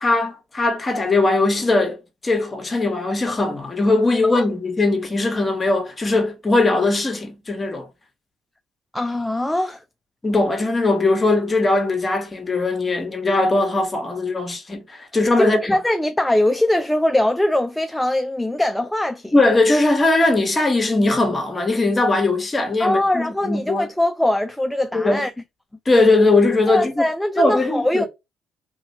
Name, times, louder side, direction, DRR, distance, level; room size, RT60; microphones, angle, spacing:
voice 1, 0.0-2.0 2.2-7.9 10.2-15.6 19.3-23.9 24.9-25.3 25.9-27.0 27.4-28.1, left 2 dB, 25° left, 1.1 m, -19 dB
voice 2, 8.9-9.8 15.4-19.3 22.8-25.3 26.7-28.1, left 1 dB, 5° left, 0.3 m, -21 dB
3.1 x 2.8 x 2.7 m
cardioid pair, 85°, 0 cm